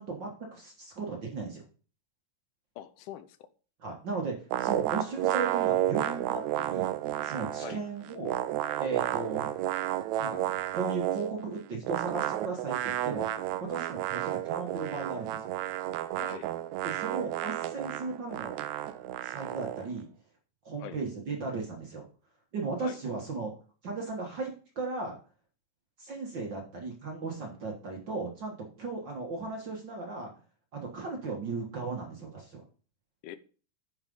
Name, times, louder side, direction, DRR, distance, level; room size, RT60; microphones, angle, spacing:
voice 1, 0.0-1.6 3.8-4.3 4.6-6.9 7.2-8.4 8.8-9.5 10.2-10.4 10.7-13.3 13.7-15.5 16.8-18.6 19.2-20.1 20.6-22.0 22.5-23.5 23.8-25.2 26.0-30.3 30.7-32.6, right 4 dB, 50° right, 1 dB, 1.5 m, -36 dB
voice 2, 2.8-3.4 7.6-7.8 16.2-16.5 20.8-21.0 22.8-23.0 33.2-33.4, left 11 dB, 85° left, 13 dB, 2.2 m, -43 dB
sound 1, 4.5-11.4 11.8-19.9, right 12 dB, 80° right, 1.8 m, -31 dB
9.8 x 4.8 x 5.3 m, 0.38 s
omnidirectional pair, 3.6 m